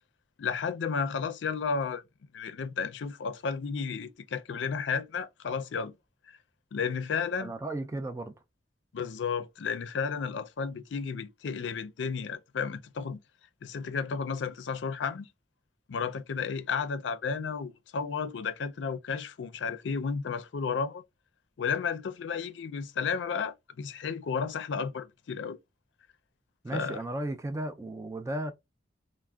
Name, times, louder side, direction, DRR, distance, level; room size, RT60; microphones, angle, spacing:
voice 1, 0.4-2.0 2.3-5.9 6.7-7.5 8.9-13.2 13.6-15.3 15.9-21.0 21.6-25.6 26.7-27.0, left 5 dB, 80° left, 0.4 m, -32 dB
voice 2, 7.4-8.3 26.6-28.5, right 1 dB, 15° right, 0.3 m, -35 dB
3.3 x 2.0 x 2.2 m
head